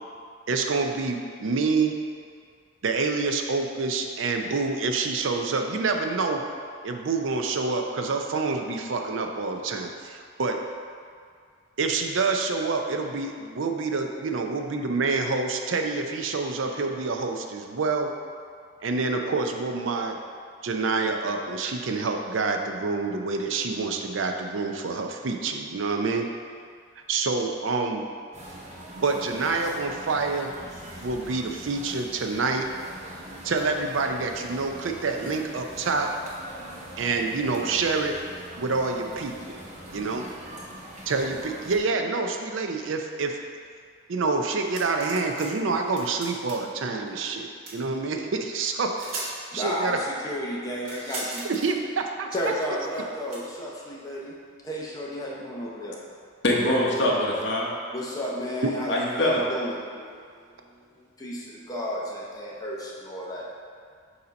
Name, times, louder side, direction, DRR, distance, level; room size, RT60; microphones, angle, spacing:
voice 1, 0.5-1.9 2.8-6.4 6.8-10.6 11.8-18.1 18.8-20.2 20.6-26.3 27.1-28.0 29.0-30.5 31.0-32.7 33.4-36.1 37.0-38.1 38.6-39.6 39.9-40.2 41.1-43.4 44.1-48.9 49.5-50.0 51.4-52.3 58.6-58.7, right 4 dB, 70° right, 4 dB, 0.5 m, -27 dB
Ski resort-main kids gathering area, 28.3-41.8, equal, 35° right, 0.9 m, -43 dB
sound 1, 44.6-45.5 45.7-46.7 47.7-47.8 48.6-48.7 49.0-49.3 50.8-51.7 53.3-53.4, right 2 dB, 85° right, 1.3 m, -37 dB
voice 2, 49.5-51.5 52.3-54.3 54.6-56.0 57.9-60.1 60.7-63.5, equal, 20° left, -4 dB, 0.7 m, -32 dB
voice 3, 56.4-57.7 58.9-59.4, left 1 dB, 60° left, -3 dB, 1.0 m, -23 dB
6.8 x 2.8 x 5.1 m, 2.1 s
head